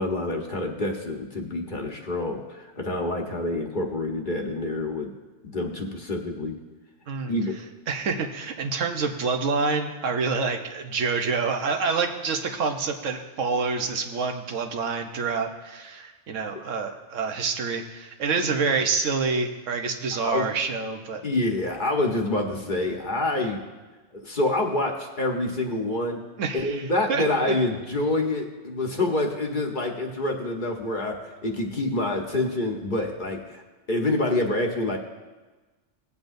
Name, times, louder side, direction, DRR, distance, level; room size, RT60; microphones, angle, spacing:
voice 1, 0.0-5.1 5.4-6.6 7.3-7.5 20.2-20.5 21.2-23.6 24.1-26.2 26.5-33.6 33.9-35.0, left 2 dB, 45° left, 2 dB, 1.2 m, -27 dB
voice 2, 7.9-21.2 26.4-26.8 27.1-27.5, right 4 dB, 85° right, 4 dB, 1.3 m, -27 dB
18.0 x 8.3 x 2.6 m, 1.2 s
omnidirectional pair, 1.3 m